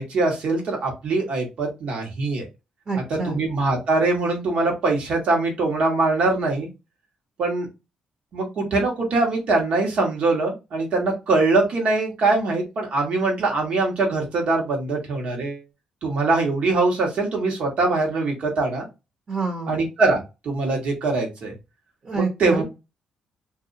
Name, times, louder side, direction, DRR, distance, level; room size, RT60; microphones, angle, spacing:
voice 1, 0.0-2.5 3.2-6.7 7.4-7.7 8.3-15.6 16.0-18.9 19.7-21.5 22.2-22.6, right 3 dB, 65° right, 1 dB, 1.3 m, -22 dB
voice 2, 2.9-3.4 19.3-19.8 22.0-22.6, right 4 dB, 45° right, -1 dB, 1.1 m, -27 dB
2.6 x 2.3 x 2.6 m, 0.25 s
cardioid pair, 95°, 2 cm